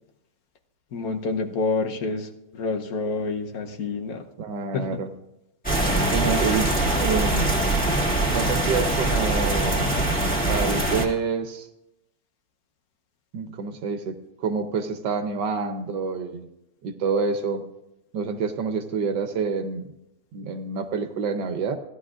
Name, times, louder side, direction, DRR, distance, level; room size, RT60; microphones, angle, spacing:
voice 1, 0.9-4.3 4.7-5.0, left 3 dB, 60° left, 5 dB, 1.3 m, -28 dB
voice 2, 4.4-5.1 6.1-7.5 8.3-9.9 10.5-11.7 13.3-16.5 16.8-17.6 18.1-19.9 20.3-21.8, right 5 dB, 75° right, 7 dB, 1.5 m, -27 dB
sound 1, 5.6-11.1, right 2 dB, 5° left, 2.0 m, -23 dB
16.0 x 11.0 x 2.5 m, 0.87 s
omnidirectional pair, 1.9 m